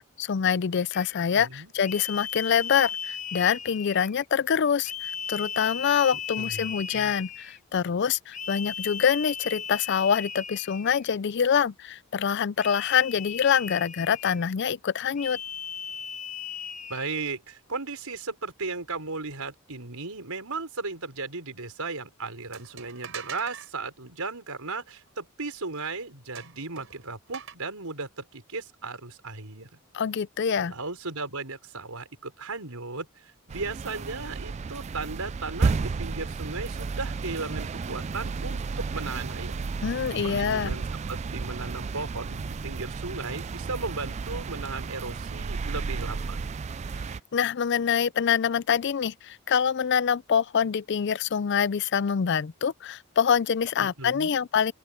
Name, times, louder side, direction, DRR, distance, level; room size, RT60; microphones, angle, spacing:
voice 1, 0.0-15.4 29.9-30.7 39.8-40.8 47.3-54.7, left 7 dB, 50° left, 0.4 m, -25 dB
sound 1, 0.9-1.2 1.8-4.3 4.8-7.6 8.3-11.1 12.6-14.5 15.2-17.3, left 8 dB, 35° left, 0.9 m, -37 dB
voice 2, 1.3-1.7 6.4-7.1 16.9-29.7 30.5-39.6 40.2-46.4 53.8-54.4, right 3 dB, 85° right, 5.0 m, -36 dB
sound 2, 22.5-23.7 26.3-27.5, right 7 dB, 60° right, 5.8 m, -42 dB
sound 3, 33.5-47.2, right 4 dB, 30° right, 0.3 m, -32 dB
open air
head